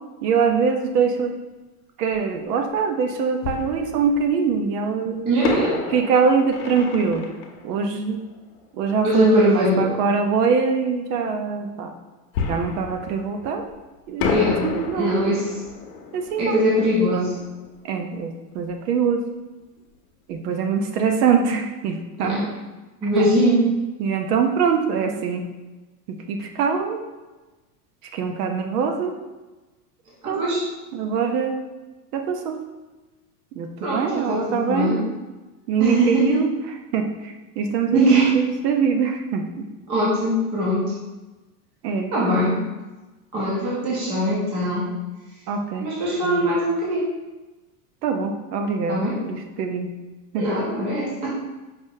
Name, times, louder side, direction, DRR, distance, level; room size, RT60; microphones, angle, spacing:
voice 1, 0.2-1.3 2.0-5.2 5.9-7.3 7.6-8.2 8.7-11.9 12.5-13.6 14.1-15.4 16.1-16.6 17.1-17.3 17.8-19.2 20.3-22.4 23.0-23.3 24.0-25.5 26.1-27.0 28.0-29.1 30.3-30.4 30.9-31.5 32.1-32.6 33.5-35.0 35.7-36.5 36.9-39.7 41.8-42.1 45.5-45.9 46.2-46.4 48.0-49.9 50.3-50.5, right 5 dB, 80° right, 5 dB, 0.8 m, -23 dB
Fireworks, 2.1-2.2 3.4-4.5 5.4-8.9 12.3-13.8 14.2-18.7 19.0-19.1 19.6-19.8, left 5 dB, 55° left, 0.8 m, -31 dB
voice 2, 5.2-5.8 9.0-9.9 14.3-14.7 14.9-15.5 16.4-17.3 22.2-22.5 23.0-23.6 30.2-30.6 33.8-35.0 35.8-36.4 37.9-38.3 39.9-40.9 42.1-42.6 43.3-44.9 45.8-47.1 48.9-49.1 50.4-51.3, equal, 15° right, -5 dB, 0.4 m, -21 dB
4.9 x 2.7 x 3.7 m, 1.1 s
supercardioid pair, 175°, 46 cm